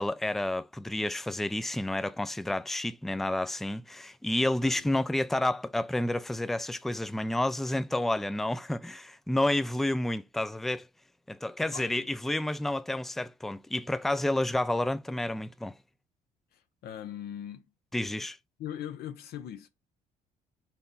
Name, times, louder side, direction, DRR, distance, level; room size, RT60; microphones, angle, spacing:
voice 1, 0.0-10.9 11.3-15.7 17.9-18.4, left 1 dB, ahead, 0.4 m, -30 dB
voice 2, 11.6-12.1 16.5-17.7 18.6-19.7, left 10 dB, 70° left, 0.8 m, -40 dB
4.5 x 4.0 x 5.3 m
cardioid pair, 110°, 17 cm